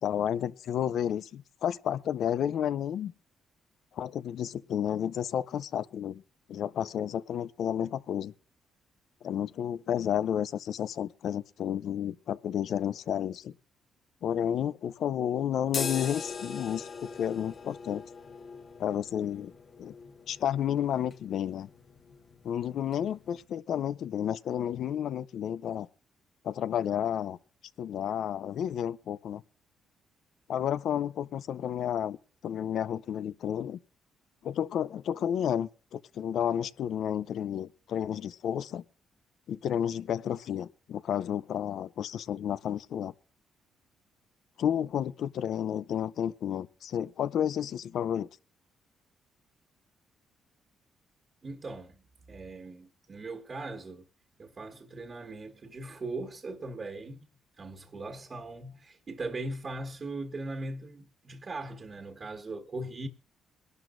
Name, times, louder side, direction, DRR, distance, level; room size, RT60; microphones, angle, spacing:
voice 1, 0.0-3.1 3.9-6.2 6.5-8.3 9.2-13.5 14.2-18.0 18.8-19.5 19.8-19.9 20.3-21.7 22.4-25.9 26.4-27.4 27.8-29.4 30.5-32.2 32.4-33.8 34.4-38.8 39.5-43.1 44.6-48.3, left 9 dB, 70° left, 0.5 m, -31 dB
sound 1, 15.7-23.5, left 5 dB, 50° left, 1.5 m, -41 dB
voice 2, 51.4-54.1 54.4-57.3 57.6-63.1, right 2 dB, 40° right, 1.5 m, -39 dB
22.5 x 12.0 x 2.6 m
cardioid pair, 90°, 0 cm